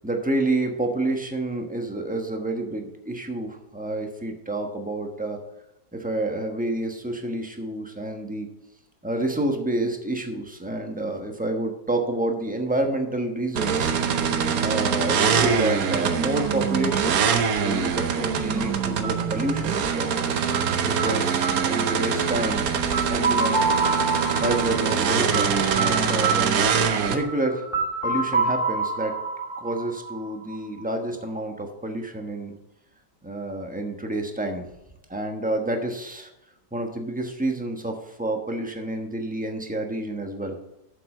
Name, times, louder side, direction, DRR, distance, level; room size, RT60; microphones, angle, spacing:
voice 1, 0.0-5.4 5.9-8.5 9.0-13.9 14.6-17.2 17.6-20.1 20.8-22.7 23.1-23.6 24.4-26.7 27.0-27.6 28.0-29.2 29.6-32.5 33.2-34.6 35.1-36.3 36.7-40.6, right 1 dB, 5° right, 3 dB, 0.9 m, -29 dB
sound 1, 13.5-27.2, right 6 dB, 60° right, 1.2 m, -24 dB
sound 2, 19.0-30.8, right 3 dB, 15° left, 2.3 m, -28 dB
8.1 x 7.2 x 5.4 m, 0.87 s
omnidirectional pair, 1.9 m